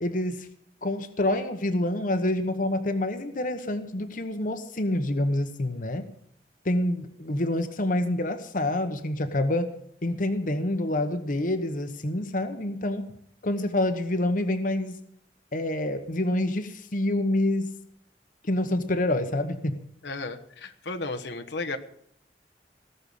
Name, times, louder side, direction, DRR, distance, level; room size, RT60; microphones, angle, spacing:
voice 1, 0.0-0.5 0.8-6.1 6.6-9.7 10.0-13.0 13.4-15.0 15.5-17.7 18.4-19.8, left 1 dB, 50° left, 8 dB, 1.1 m, -27 dB
voice 2, 20.0-21.8, left 3 dB, 85° left, 5 dB, 1.2 m, -34 dB
18.0 x 6.8 x 8.6 m, 0.68 s
head